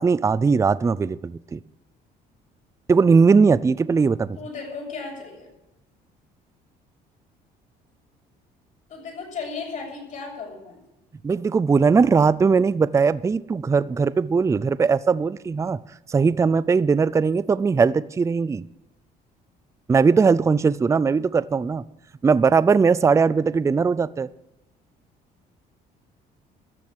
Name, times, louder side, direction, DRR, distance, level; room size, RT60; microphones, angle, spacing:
voice 1, 0.0-1.6 2.9-4.4 11.2-15.8 16.1-18.6 19.9-21.8 22.2-24.3, right 5 dB, 15° right, 18 dB, 0.4 m, -19 dB
voice 2, 4.3-5.5 8.9-10.8, left 4 dB, 50° left, -1 dB, 7.2 m, -35 dB
14.0 x 7.6 x 9.7 m, 0.90 s
cardioid pair, 110°, 17 cm